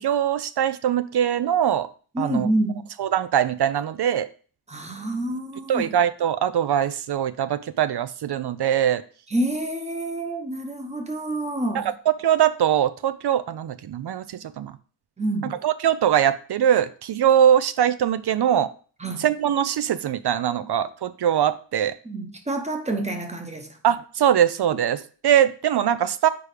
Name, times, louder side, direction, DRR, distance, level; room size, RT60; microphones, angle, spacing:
voice 1, 0.0-1.9 2.2-2.5 3.0-4.3 5.7-9.0 11.7-11.9 12.2-14.7 15.6-18.7 19.2-21.9 23.8-26.3, right 9 dB, 65° right, 0.5 m, -22 dB
voice 2, 2.1-2.9 4.7-5.9 9.3-11.9 15.2-15.5 19.0-19.2 22.0-23.7, right 1 dB, 15° right, 0.9 m, -27 dB
4.9 x 4.8 x 4.9 m
wide cardioid pair, 180°, 43 cm